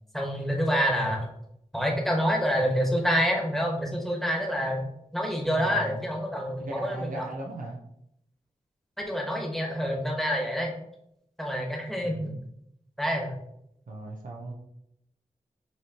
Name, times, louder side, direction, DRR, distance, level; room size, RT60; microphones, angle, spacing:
voice 1, 0.1-1.3 1.7-4.8 5.1-7.2 9.0-10.7 11.4-12.3 13.0-13.3, equal, ahead, 0 dB, 1.2 m, -27 dB
voice 2, 5.5-6.0 6.6-7.8 12.0-12.4 13.9-14.5, right 2 dB, 75° right, -2 dB, 0.7 m, -37 dB
5.9 x 3.0 x 2.9 m, 0.77 s
wide cardioid pair, 55°, 14 cm